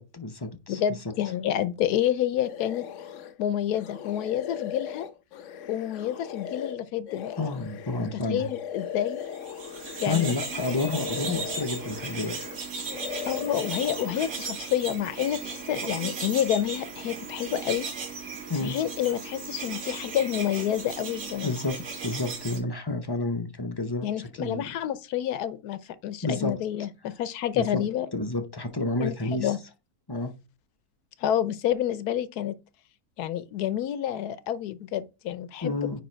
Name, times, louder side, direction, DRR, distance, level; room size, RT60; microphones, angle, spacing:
voice 1, 0.0-0.8 7.4-8.5 10.1-12.4 18.5-18.8 21.4-21.8 22.0-24.6 26.2-26.5 27.5-27.8 28.1-29.5 30.1-30.3 35.6-36.0, left 3 dB, 25° left, 0.5 m, -30 dB
voice 2, 0.7-2.9 3.4-5.1 5.7-7.3 8.0-9.2 10.0-10.6 13.3-17.9 18.6-21.5 24.0-28.1 29.0-29.1 29.4-29.6 31.2-32.5 33.2-36.0, left 11 dB, 80° left, 1.2 m, -29 dB
sound 1, 2.4-3.3 3.7-10.4 10.6-12.6 12.9-14.3, left 8 dB, 65° left, 0.9 m, -38 dB
sound 2, 9.3-22.6, right 4 dB, 75° right, 2.0 m, -36 dB
9.6 x 3.3 x 4.4 m
omnidirectional pair, 1.7 m